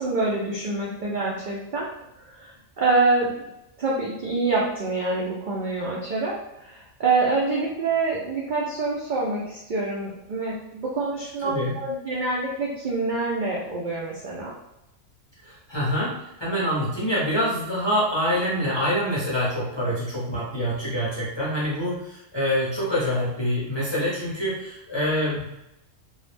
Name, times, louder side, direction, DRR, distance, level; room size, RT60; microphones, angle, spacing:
voice 1, 0.0-1.9 2.2-3.4 3.8-14.5, right 3 dB, 65° right, -5 dB, 0.4 m, -26 dB
voice 2, 11.4-11.8 15.4-25.4, equal, 30° left, -8 dB, 0.6 m, -26 dB
2.3 x 2.0 x 3.2 m, 0.86 s
omnidirectional pair, 1.3 m